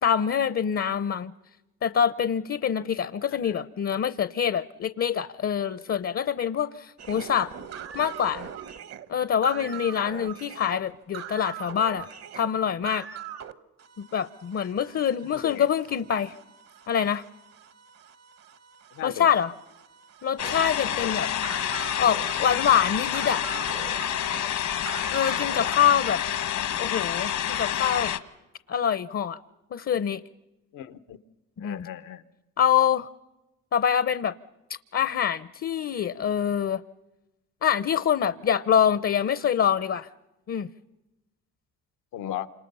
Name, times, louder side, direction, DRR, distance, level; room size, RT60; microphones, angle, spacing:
voice 1, 0.0-1.3 1.8-7.5 7.9-8.5 9.1-12.1 12.3-13.1 14.1-16.3 16.9-17.2 19.0-19.5 20.2-21.3 22.0-23.5 25.1-26.2 26.8-28.1 28.7-29.4 29.7-30.2 31.6-31.9 32.6-33.1 33.7-34.3 34.9-36.8 37.6-40.1 40.5-40.7, left 8 dB, 45° left, 15 dB, 0.8 m, -25 dB
sound 1, 7.0-13.5 13.8-25.8, right 9 dB, 55° right, 1.3 m, -42 dB
voice 2, 9.5-10.3 15.2-15.7 18.9-19.3 21.0-21.2 24.9-25.8 30.7-31.2 31.6-32.2 42.1-42.5, left 11 dB, 85° left, 11 dB, 1.2 m, -38 dB
sound 2, 20.4-28.2, left 10 dB, 70° left, 1.4 m, -28 dB
28.5 x 27.0 x 5.6 m, 1.0 s
cardioid pair, 90°, 30 cm